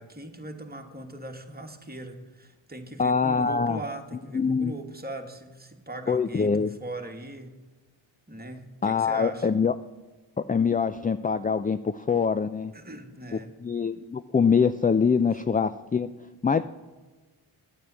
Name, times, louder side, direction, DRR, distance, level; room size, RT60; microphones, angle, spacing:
voice 1, 0.0-7.6 8.3-9.5 12.7-13.5, right 1 dB, 20° right, 4 dB, 1.7 m, -39 dB
voice 2, 3.0-3.8 4.3-4.7 6.1-6.7 8.8-9.7 10.5-12.7 13.6-16.1 16.4-16.7, left 5 dB, 20° left, 12 dB, 0.3 m, -24 dB
9.4 x 8.6 x 8.2 m, 1.2 s
cardioid pair, 55°, 50 cm